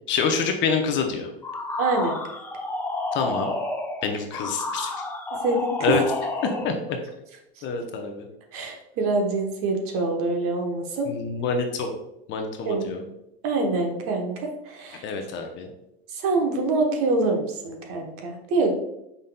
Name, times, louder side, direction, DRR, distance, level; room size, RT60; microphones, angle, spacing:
voice 1, 0.1-1.3 3.1-3.5 4.0-5.0 5.8-6.0 6.4-7.0 7.6-8.3 11.1-11.9 12.3-13.0 15.0-15.7, left 5 dB, 35° left, 4 dB, 0.7 m, -26 dB
sound 1, 1.4-6.8, left 2 dB, 5° left, 0.3 m, -30 dB
voice 2, 1.8-2.2 5.4-5.7 7.6-7.7 8.5-11.1 12.7-12.9 13.4-15.0 16.1-18.7, right 3 dB, 45° right, 3 dB, 1.0 m, -25 dB
5.2 x 4.0 x 2.2 m, 0.85 s
hypercardioid pair, 110°, 32 cm